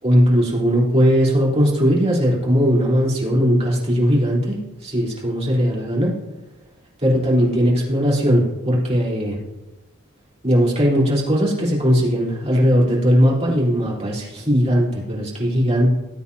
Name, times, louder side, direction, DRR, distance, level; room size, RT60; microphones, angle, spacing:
voice 1, 0.0-4.6 4.8-6.1 7.0-9.4 10.4-15.9, equal, 30° right, -5 dB, 3.7 m, -18 dB
19.0 x 8.5 x 2.8 m, 1.0 s
head